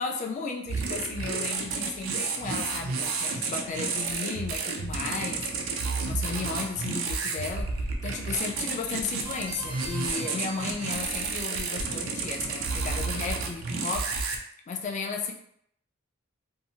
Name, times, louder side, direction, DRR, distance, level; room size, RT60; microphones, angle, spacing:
voice 1, 0.0-5.7 6.0-15.3, left 4 dB, 35° left, 2 dB, 0.4 m, -34 dB
sound 1, 0.7-14.4, right 4 dB, 80° right, 0.4 m, -31 dB
sound 2, 9.2-11.6, right 2 dB, 25° right, 0.5 m, -43 dB
2.7 x 2.0 x 2.7 m, 0.68 s
head